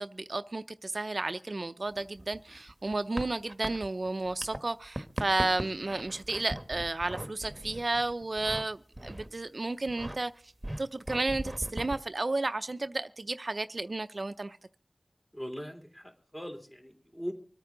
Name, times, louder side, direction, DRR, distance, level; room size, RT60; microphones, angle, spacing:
voice 1, 0.0-10.3 10.8-14.6, right 2 dB, 55° right, 0.5 m, -32 dB
sound 1, 1.9-4.6 4.8-8.6 8.9-9.4 9.8-10.2 10.6-12.0, right 1 dB, 15° right, 1.3 m, -39 dB
voice 2, 15.3-17.3, equal, 15° left, 3.2 m, -40 dB
25.0 x 9.3 x 3.8 m
wide cardioid pair, 70°, 0 cm